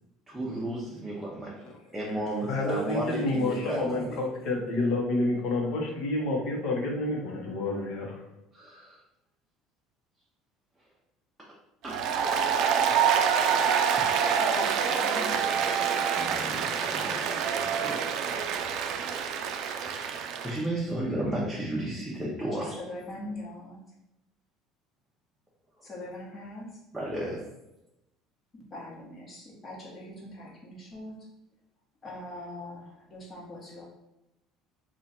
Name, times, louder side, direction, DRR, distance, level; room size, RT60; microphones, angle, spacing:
voice 1, 0.3-1.5 1.9-4.2 8.5-9.0 11.8-12.0 16.1-17.2 17.6-18.7 19.6-22.8 25.8-25.9 26.9-27.5, right 1 dB, 5° right, -6 dB, 0.7 m, -34 dB
voice 2, 2.5-8.2, left 2 dB, 60° left, -1 dB, 0.9 m, -29 dB
Applause, 11.8-20.6, right 7 dB, 60° right, 0.3 m, -26 dB
voice 3, 14.2-17.6 22.4-23.8 25.8-26.7 28.5-31.2 32.0-33.8, left 1 dB, 30° left, -4 dB, 1.2 m, -42 dB
3.0 x 2.4 x 4.0 m, 0.90 s
cardioid pair, 135°, 0 cm